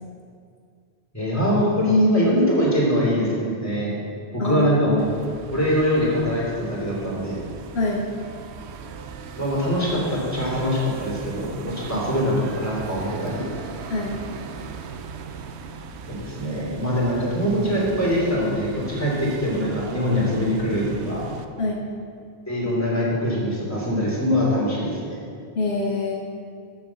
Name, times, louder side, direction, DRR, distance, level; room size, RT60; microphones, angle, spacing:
voice 1, 1.1-3.9 4.3-5.1 5.5-7.4 9.4-13.5 16.1-21.3 22.5-25.2, equal, 15° left, -6 dB, 3.0 m, -23 dB
voice 2, 4.4-5.0 7.7-8.0 11.9-12.0 13.9-14.2 21.6-21.8 25.5-26.2, left 3 dB, 70° left, -1 dB, 1.2 m, -25 dB
sound 1, 5.0-21.5, right 5 dB, 80° right, 0.9 m, -39 dB
8.4 x 7.3 x 7.0 m, 2.2 s
omnidirectional pair, 1.1 m